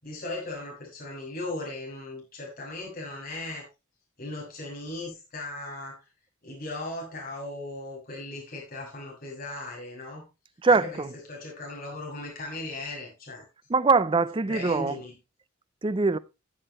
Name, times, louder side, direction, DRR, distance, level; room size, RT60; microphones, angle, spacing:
voice 1, 0.0-3.7 4.2-6.1 6.4-10.3 10.6-13.4 14.5-15.1, left 2 dB, 45° left, 6.4 m, -37 dB
voice 2, 10.6-11.1 13.7-15.0 15.8-16.2, right 4 dB, 25° right, 0.5 m, -22 dB
15.5 x 7.5 x 3.1 m
head